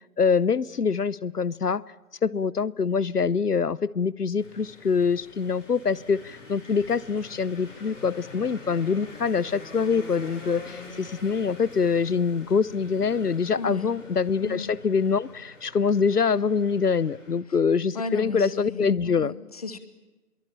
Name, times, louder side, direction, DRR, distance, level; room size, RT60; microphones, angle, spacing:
voice 1, 0.2-1.8 2.2-19.3, left 5 dB, 90° left, 22 dB, 0.8 m, -24 dB
sound 1, 4.4-17.4, left 2 dB, 55° left, 7.4 m, -45 dB
voice 2, 13.6-13.9 14.4-14.7 17.9-19.8, left 4 dB, 25° left, 12 dB, 1.4 m, -35 dB
25.0 x 23.0 x 8.7 m, 1.1 s
figure-of-eight pair, 160°, 45 cm